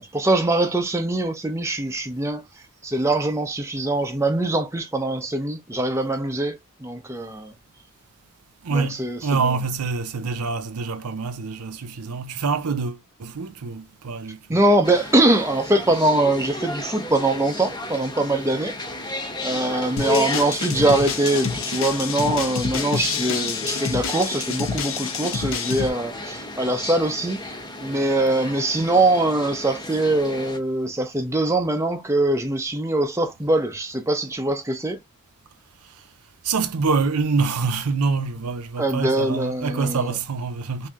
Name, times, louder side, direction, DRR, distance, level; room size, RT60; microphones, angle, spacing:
voice 1, 0.0-2.4 2.8-7.5 8.7-9.5 14.5-18.7 19.4-27.4 27.8-35.0 38.8-40.1, right 2 dB, 10° right, 0.6 m, -23 dB
voice 2, 8.6-14.6 36.4-40.9, right 4 dB, 90° right, 0.6 m, -26 dB
sound 1, 14.8-30.6, left 2 dB, 20° left, 0.8 m, -33 dB
sound 2, 20.0-25.9, left 6 dB, 60° left, 0.7 m, -28 dB
3.2 x 2.7 x 3.6 m
head